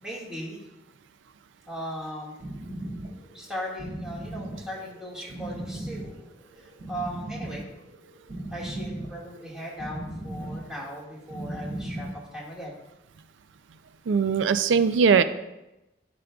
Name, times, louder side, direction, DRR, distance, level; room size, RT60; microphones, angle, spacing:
voice 1, 0.0-0.6 1.7-2.4 3.3-7.7 8.5-12.1 12.3-12.8, equal, 5° right, -5 dB, 1.8 m, -38 dB
sound 1, 2.4-12.2, right 1 dB, 50° right, 2.0 m, -37 dB
voice 2, 14.1-15.2, right 6 dB, 85° right, 12 dB, 0.4 m, -20 dB
12.0 x 5.1 x 2.3 m, 0.94 s
head